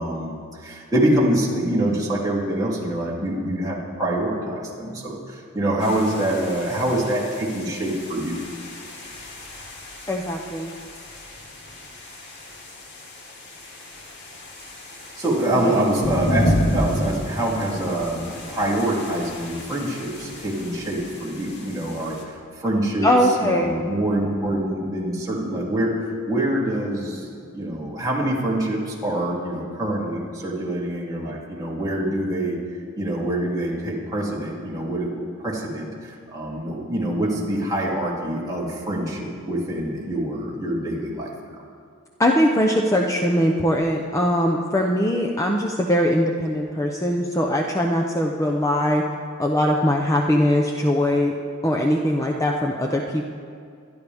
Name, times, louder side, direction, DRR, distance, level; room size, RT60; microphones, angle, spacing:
voice 1, 0.0-8.4 15.0-23.1 23.4-32.6 33.0-41.3, right 1 dB, 20° right, -5 dB, 2.9 m, -25 dB
sound 1, 5.8-22.2, equal, 55° left, 2.1 m, -31 dB
voice 2, 10.1-10.7 15.5-15.8 23.0-23.7 42.2-49.0 49.4-51.3 51.6-53.3, equal, 15° left, 1 dB, 0.8 m, -21 dB
25.5 x 11.5 x 3.5 m, 2.3 s
head